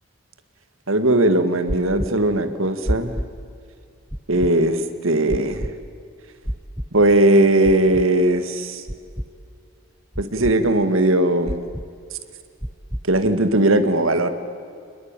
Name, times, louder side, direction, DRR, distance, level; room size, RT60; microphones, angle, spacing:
voice 1, 0.9-3.1 4.3-5.7 6.9-8.8 10.2-11.6 13.0-14.3, right 1 dB, 75° right, 9 dB, 1.9 m, -18 dB
sound 1, 1.7-2.1 2.9-3.3 4.1-4.5 5.3-5.7 6.4-6.9 7.6-8.0 8.9-9.3 10.1-10.5 11.5-11.9 12.6-13.0, equal, 5° right, 0.6 m, -27 dB
28.5 x 21.0 x 9.0 m, 2.4 s
head